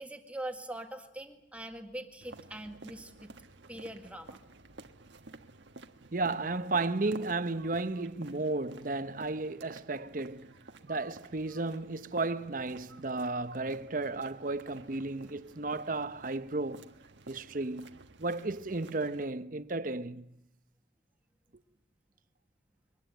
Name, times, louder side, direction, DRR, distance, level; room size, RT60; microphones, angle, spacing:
voice 1, 0.0-3.3 3.7-4.4, right 1 dB, 5° right, 1.9 m, -42 dB
sound 1, 2.2-19.2, right 3 dB, 80° right, 1.4 m, -52 dB
voice 2, 6.1-10.6 10.8-16.9 17.3-20.3, right 3 dB, 45° right, 0.9 m, -34 dB
24.0 x 20.5 x 9.2 m
head